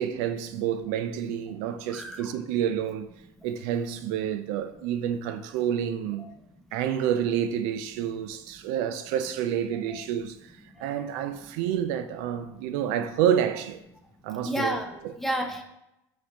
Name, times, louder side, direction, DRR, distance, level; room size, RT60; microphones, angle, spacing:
voice 1, 0.0-3.1 3.4-6.3 6.7-13.8 14.2-14.8 15.0-15.1, right 9 dB, 70° right, 0.3 m, -29 dB
voice 2, 1.9-2.3 6.2-6.3 9.9-10.0 14.4-15.6, equal, 5° left, 0.4 m, -31 dB
6.1 x 2.6 x 2.9 m
cardioid pair, 160°, 8 cm